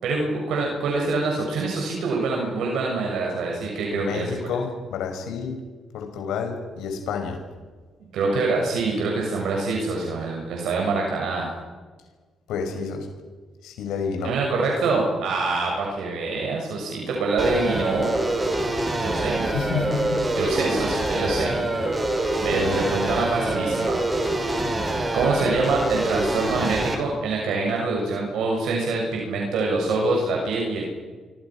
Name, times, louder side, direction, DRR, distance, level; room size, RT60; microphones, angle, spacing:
voice 1, 0.0-4.3 8.1-11.5 14.2-18.1 19.0-19.4 20.3-21.6 22.4-24.0 25.1-30.8, right 3 dB, 80° right, 0 dB, 6.6 m, -25 dB
voice 2, 3.9-5.6 5.9-7.4 12.5-13.1 13.6-14.3 19.5-20.3, left 6 dB, 90° left, 5 dB, 5.7 m, -29 dB
sound 1, 17.4-26.9, right 1 dB, 25° right, 5.6 m, -25 dB
26.5 x 25.5 x 6.2 m, 1.4 s
cardioid pair, 90°, 0 cm